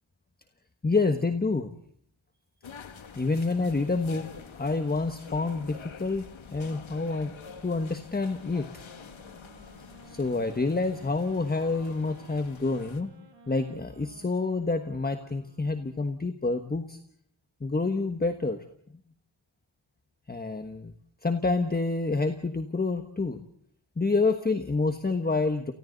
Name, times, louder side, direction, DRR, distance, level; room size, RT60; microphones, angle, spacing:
voice 1, 0.8-1.7 3.2-4.3 4.5-6.2 6.5-7.3 7.6-8.7 10.1-13.1 13.5-17.0 17.6-18.6 20.3-20.9 21.2-23.4 24.0-25.7, left 3 dB, 20° left, 8 dB, 1.2 m, -28 dB
sound 1, 2.6-13.0, left 6 dB, 75° left, 2.2 m, -47 dB
sound 2, 8.4-16.1, right 3 dB, 60° right, 4.2 m, -56 dB
30.0 x 29.5 x 4.0 m, 0.63 s
wide cardioid pair, 175°, 48 cm